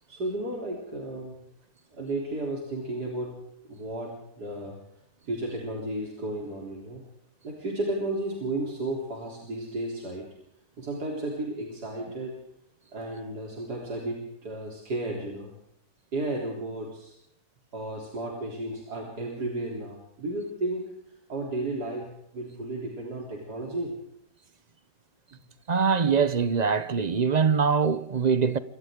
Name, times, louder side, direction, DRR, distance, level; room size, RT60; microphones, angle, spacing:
voice 1, 0.1-1.4 1.9-4.8 5.3-7.1 7.4-10.3 10.8-12.4 12.9-15.5 16.1-17.1 17.7-21.0 21.3-24.0 25.3-25.4, right 1 dB, 85° right, 4.2 m, -33 dB
voice 2, 25.7-28.6, right 6 dB, 35° right, 0.7 m, -23 dB
28.0 x 24.5 x 3.8 m
omnidirectional pair, 1.7 m